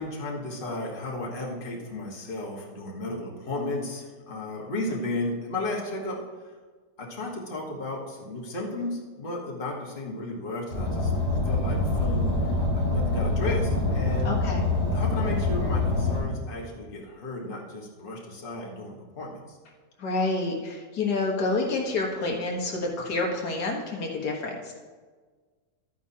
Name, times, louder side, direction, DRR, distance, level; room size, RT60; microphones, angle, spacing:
voice 1, 0.0-6.2 7.0-11.1 11.4-12.3 12.7-14.4 14.9-19.6, left 2 dB, 35° left, -2 dB, 1.6 m, -34 dB
Car, 10.7-16.2, left 2 dB, 25° right, 2.9 m, -25 dB
voice 2, 14.2-14.6 20.0-24.7, left 3 dB, 85° left, 0 dB, 1.9 m, -28 dB
12.5 x 9.4 x 2.8 m, 1.5 s
omnidirectional pair, 1.7 m